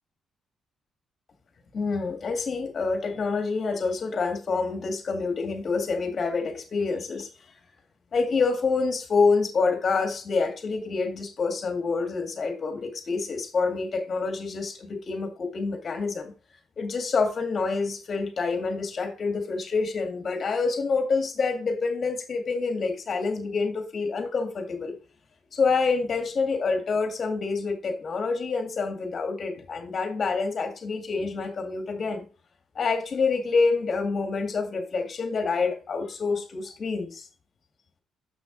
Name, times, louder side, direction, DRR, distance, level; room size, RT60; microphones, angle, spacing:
voice 1, 1.7-7.3 8.1-16.3 16.8-24.9 25.5-32.3 32.8-37.3, left 4 dB, 45° left, 6 dB, 1.9 m, -27 dB
6.5 x 6.1 x 3.9 m, 0.35 s
cardioid pair, 90°, 0 cm